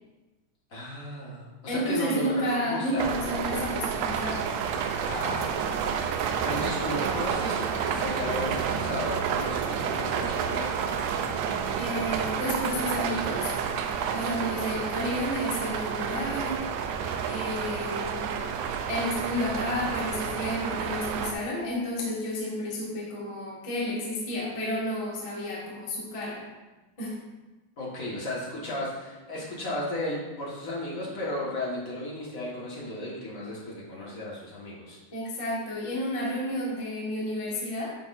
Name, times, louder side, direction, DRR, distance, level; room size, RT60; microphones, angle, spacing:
voice 1, 0.7-3.2 5.0-5.8 6.4-10.9 27.8-35.0, left 1 dB, 50° left, -5 dB, 1.0 m, -34 dB
voice 2, 1.7-4.4 11.8-13.5 14.1-16.7 17.2-18.3 18.9-26.4 27.0-27.2 35.1-38.0, equal, 20° left, -6 dB, 0.8 m, -31 dB
sound 1, 3.0-21.3, right 7 dB, 80° right, 2.0 m, -30 dB
9.6 x 6.0 x 2.6 m, 1.1 s
omnidirectional pair, 3.8 m